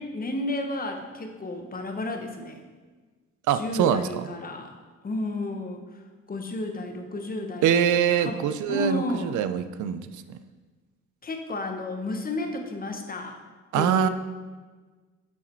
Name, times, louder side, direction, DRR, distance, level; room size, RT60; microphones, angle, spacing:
voice 1, 0.0-2.6 3.5-4.7 5.0-5.8 6.3-7.8 8.2-8.4 8.7-9.3 11.2-13.4 13.7-14.1, left 2 dB, 30° left, 5 dB, 1.0 m, -32 dB
voice 2, 3.5-4.1 7.6-10.4 13.7-14.1, right 9 dB, 75° right, 11 dB, 0.5 m, -24 dB
7.1 x 4.9 x 4.4 m, 1.4 s
cardioid pair, 90°, 30 cm